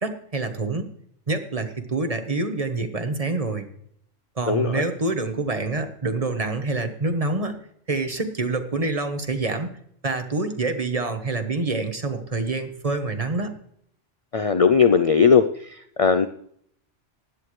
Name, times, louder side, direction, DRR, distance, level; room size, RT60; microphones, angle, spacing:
voice 1, 0.0-0.8 1.3-3.7 4.4-7.6 7.9-9.7 10.0-13.5, right 3 dB, 30° right, 6 dB, 1.2 m, -26 dB
voice 2, 14.3-15.4 16.0-16.3, left 6 dB, 60° left, 10 dB, 0.3 m, -17 dB
16.0 x 10.5 x 3.2 m, 0.65 s
omnidirectional pair, 1.3 m